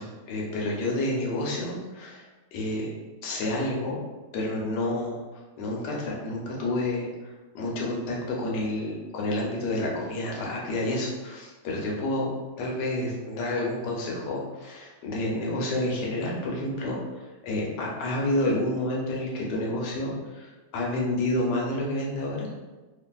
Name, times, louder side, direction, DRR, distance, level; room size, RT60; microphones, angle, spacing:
voice 1, 0.0-2.9 3.2-4.0 4.3-5.2 5.6-12.3 12.6-17.0 17.4-22.5, left 1 dB, 80° left, -3 dB, 1.3 m, -29 dB
2.8 x 2.5 x 2.2 m, 1.2 s
omnidirectional pair, 1.8 m